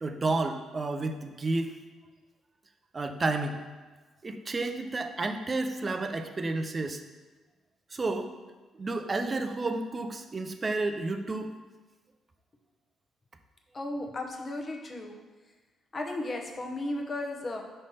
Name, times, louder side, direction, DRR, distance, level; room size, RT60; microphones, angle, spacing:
voice 1, 0.0-1.7 2.9-3.6 4.2-7.0 7.9-8.3 8.8-11.5, right 3 dB, 30° right, 7 dB, 0.5 m, -31 dB
voice 2, 13.7-15.1 15.9-17.6, left 2 dB, 35° left, 2 dB, 0.8 m, -35 dB
5.4 x 3.3 x 5.4 m, 1.3 s
cardioid pair, 90°, 0 cm